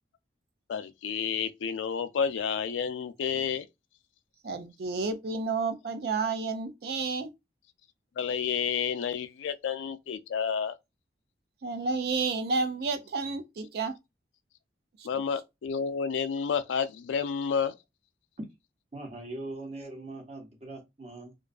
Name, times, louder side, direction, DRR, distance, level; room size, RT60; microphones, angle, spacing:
voice 1, 0.7-3.6 8.2-10.8 15.0-17.7, left 6 dB, 90° left, 0.3 m, -30 dB
voice 2, 4.4-7.3 11.6-13.9, right 4 dB, 55° right, 0.4 m, -30 dB
voice 3, 18.9-21.3, right 2 dB, 35° right, 0.7 m, -41 dB
2.5 x 2.3 x 2.3 m
head